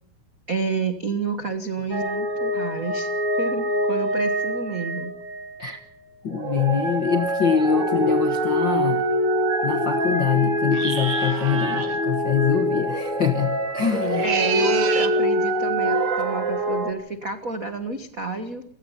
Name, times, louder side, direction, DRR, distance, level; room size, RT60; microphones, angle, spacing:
voice 1, 0.5-3.1 3.4-5.1 14.2-18.6, right 4 dB, 85° right, 8 dB, 0.7 m, -29 dB
sound 1, 1.9-5.7 6.3-16.9, equal, 25° right, 2.1 m, -24 dB
voice 2, 6.2-9.0 9.6-14.3, left 7 dB, 65° left, 7 dB, 1.1 m, -24 dB
sound 2, 10.7-12.0 14.0-15.2, right 7 dB, 60° right, 1.1 m, -28 dB
28.5 x 17.5 x 5.7 m, 0.66 s
omnidirectional pair, 4.2 m